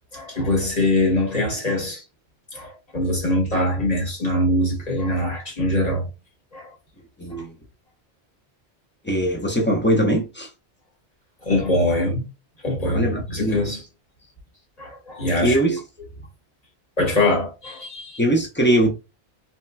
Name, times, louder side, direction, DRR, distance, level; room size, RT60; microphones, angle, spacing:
voice 1, 0.1-2.0 2.5-6.1 6.5-6.7 7.4-7.5 11.4-12.3 12.6-13.8 14.8-15.6 17.0-18.2, left 1 dB, 35° left, 1.3 m, -23 dB
voice 2, 7.2-7.5 9.0-10.5 12.8-13.6 15.4-15.8 18.2-18.9, right 1 dB, 15° left, 0.5 m, -21 dB
3.3 x 2.7 x 2.2 m
omnidirectional pair, 1.2 m